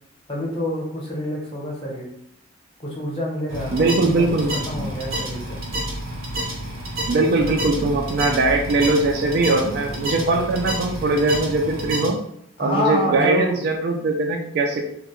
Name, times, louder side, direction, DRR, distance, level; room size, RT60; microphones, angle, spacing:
voice 1, 0.3-2.1 2.8-5.6 12.6-13.6, left 1 dB, 25° left, -3 dB, 0.7 m, -27 dB
sound 1, 3.5-12.1, right 1 dB, 75° right, 0.7 m, -29 dB
voice 2, 3.7-4.6 7.1-12.2 12.6-14.9, right 2 dB, 50° right, 3 dB, 0.3 m, -21 dB
2.2 x 2.1 x 2.9 m, 0.73 s
head